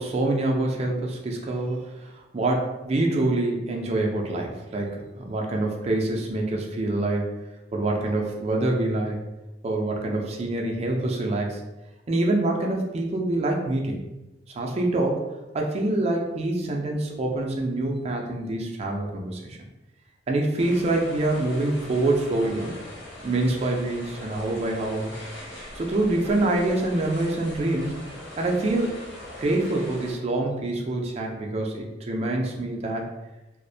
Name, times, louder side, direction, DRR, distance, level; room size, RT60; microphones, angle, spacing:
voice 1, 0.0-7.4 7.7-9.2 9.6-11.6 12.1-14.0 14.5-15.2 15.5-19.6 20.3-22.8 23.2-25.1 25.8-27.9 28.4-29.0 29.4-33.1, right 2 dB, 35° right, 0 dB, 0.4 m, -26 dB
sound 1, 20.6-30.1, left 1 dB, 85° left, 0.9 m, -41 dB
2.5 x 2.0 x 2.6 m, 1.0 s
head